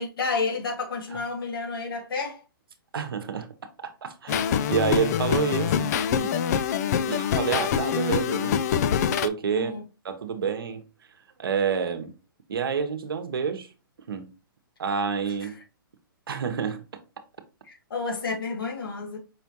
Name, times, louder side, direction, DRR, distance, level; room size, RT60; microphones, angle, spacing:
voice 1, 0.0-2.4 7.0-7.4 9.5-9.8 15.4-15.5 17.7-19.2, left 4 dB, 75° left, 1.9 m, -31 dB
voice 2, 2.9-3.5 4.0-5.9 6.2-6.4 7.1-8.6 9.1-9.7 10.0-10.8 11.4-12.1 12.5-13.7 14.1-14.3 14.8-15.6 16.3-16.8, right 6 dB, 75° right, 1.0 m, -28 dB
sound 1, 4.3-9.3, left 8 dB, 45° left, 0.4 m, -25 dB
5.5 x 3.4 x 2.8 m
hypercardioid pair, 140°, 12 cm